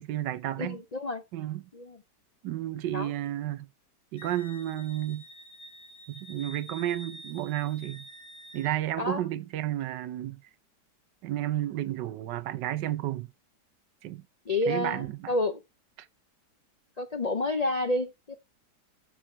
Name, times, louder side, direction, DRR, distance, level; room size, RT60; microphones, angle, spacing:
voice 1, 0.0-0.8 1.3-1.6 2.4-3.7 4.1-5.3 6.1-8.1 8.5-10.4 11.2-13.3 14.0-14.2 14.7-15.3, right 13 dB, 80° right, 1.4 m, -32 dB
voice 2, 0.6-1.2 1.7-2.0 2.9-3.1 9.0-9.2 14.5-15.6 17.0-18.4, left 2 dB, 65° left, 0.4 m, -29 dB
Wind instrument woodwind instrument, 4.2-8.7, equal, 40° left, 2.5 m, -48 dB
12.5 x 4.6 x 4.5 m
omnidirectional pair, 1.9 m